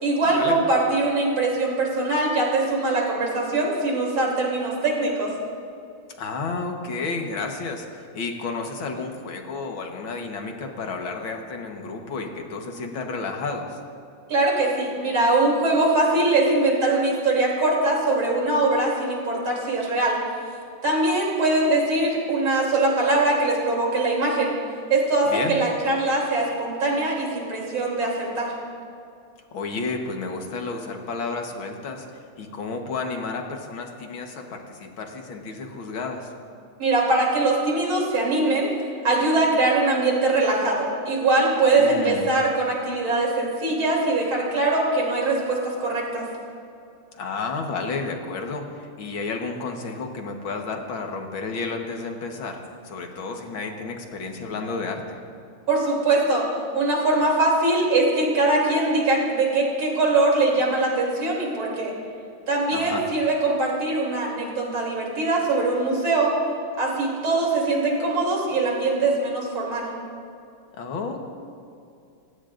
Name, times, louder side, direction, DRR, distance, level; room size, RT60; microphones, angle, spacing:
voice 1, 0.0-5.3 14.3-20.2 20.8-24.5 24.9-28.5 36.8-38.7 39.0-46.3 55.7-56.4 56.7-61.9 62.5-66.3 66.8-69.9, right 2 dB, 75° right, -2 dB, 3.8 m, -22 dB
voice 2, 6.2-13.8 25.3-25.6 29.5-36.3 41.8-42.3 47.1-55.2 62.7-63.0 70.8-71.2, left 4 dB, 70° left, 3 dB, 2.1 m, -31 dB
27.5 x 15.5 x 2.6 m, 2.5 s
omnidirectional pair, 2.3 m